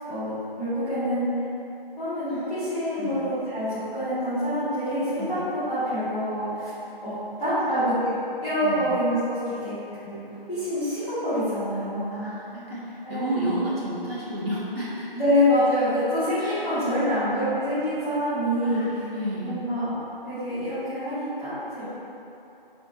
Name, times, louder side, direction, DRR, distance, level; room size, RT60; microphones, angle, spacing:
voice 1, 0.1-1.3 2.0-5.2 5.5-6.7 7.0-7.1 7.4-8.1 8.4-9.7 10.0-12.3 13.0-13.6 15.1-18.8 19.4-20.0 20.2-21.8, equal, 5° right, -26 dB, 0.8 m, -26 dB
voice 2, 12.1-15.2 16.4-17.3 18.6-19.6 21.8-21.9, equal, 85° right, -9 dB, 1.4 m, -33 dB
4.2 x 2.7 x 2.8 m, 3.0 s
figure-of-eight pair, 160°, 29 cm